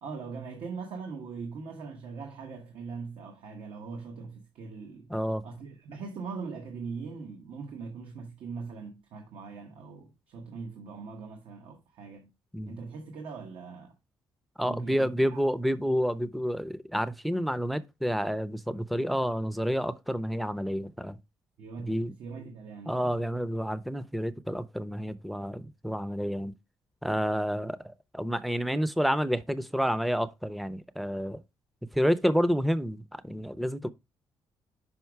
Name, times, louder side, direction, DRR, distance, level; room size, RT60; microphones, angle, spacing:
voice 1, 0.0-5.1 5.4-12.3 12.7-13.9 14.6-15.4 21.6-23.1, right 4 dB, 80° right, 1.2 m, -41 dB
voice 2, 5.1-5.4 12.5-12.8 14.6-21.2 21.8-22.1 22.9-26.5 27.0-31.4 31.9-33.9, equal, ahead, 0.5 m, -29 dB
5.6 x 5.0 x 4.6 m
cardioid pair, 100°, 9 cm